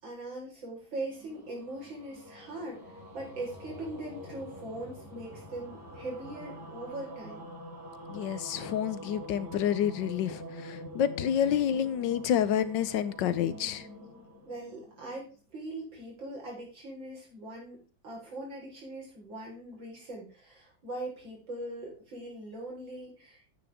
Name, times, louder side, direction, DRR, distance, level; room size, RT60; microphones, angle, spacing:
voice 1, 0.0-7.4 14.5-23.5, right 2 dB, 90° right, 5.2 m, -41 dB
sound 1, 0.9-15.3, equal, 45° right, 5.1 m, -46 dB
voice 2, 8.1-13.9, left 9 dB, 75° left, 1.4 m, -29 dB
10.5 x 8.9 x 3.6 m
omnidirectional pair, 2.0 m